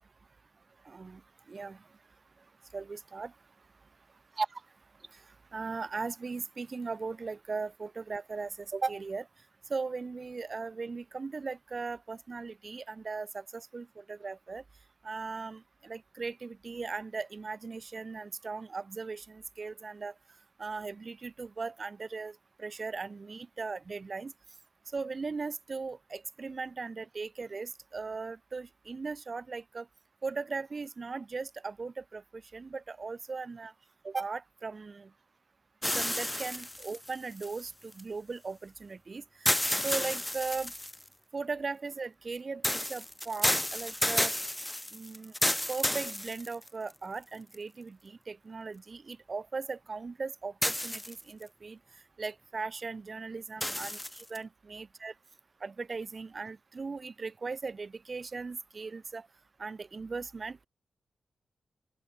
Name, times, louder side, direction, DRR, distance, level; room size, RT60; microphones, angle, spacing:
voice 1, 0.8-1.2 1.5-1.8 2.7-3.3 4.4-4.5 5.1-5.2 5.5-9.3 9.7-14.6 15.0-20.1 20.6-24.3 24.9-29.9 30.2-33.7 34.0-35.1 35.9-39.5 39.8-40.7 41.3-44.3 44.9-45.3 45.7-51.8 52.2-54.0 54.3-55.1 55.6-59.3 59.6-60.7, right 4 dB, 45° right, 1.2 m, -38 dB
sound 1, 35.8-38.0 39.5-41.1 42.6-46.9 47.5-47.6 50.6-51.4 53.6-54.4, left 1 dB, 10° left, 0.4 m, -31 dB
open air
cardioid pair, 80°, 0 cm